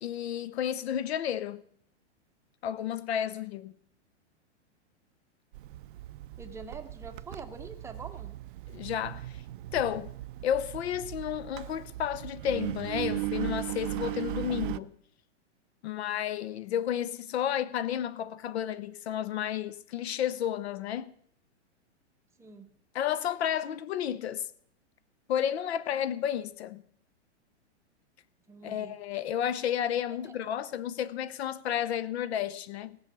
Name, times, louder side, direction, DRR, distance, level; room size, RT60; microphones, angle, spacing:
voice 1, 0.0-1.6 2.6-3.8 8.7-9.4 9.7-10.1 10.4-14.9 15.8-21.1 22.9-24.5 25.3-26.8 28.6-33.0, left 10 dB, 65° left, 0.7 m, -32 dB
Engine, 5.5-14.8, right 17 dB, 45° right, 0.5 m, -38 dB
voice 2, 6.4-8.4 22.4-22.8 28.5-29.0 30.1-30.6, right 4 dB, 10° right, 0.7 m, -45 dB
18.5 x 7.0 x 6.0 m
hypercardioid pair, 145°, 35 cm